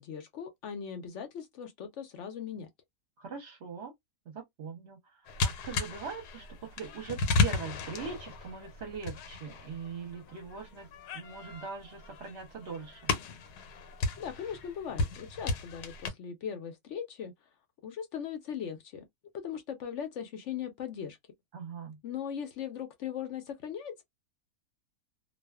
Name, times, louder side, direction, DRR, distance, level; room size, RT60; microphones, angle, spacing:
voice 1, 0.0-2.7 14.2-17.3 17.8-19.0 19.3-21.2 22.0-24.0, left 8 dB, 65° left, 0.7 m, -39 dB
voice 2, 3.2-3.9 4.3-13.1 21.5-22.0, right 6 dB, 55° right, 0.9 m, -42 dB
sound 1, 5.3-16.1, left 4 dB, 90° left, 1.2 m, -34 dB
2.5 x 2.3 x 2.2 m
omnidirectional pair, 1.7 m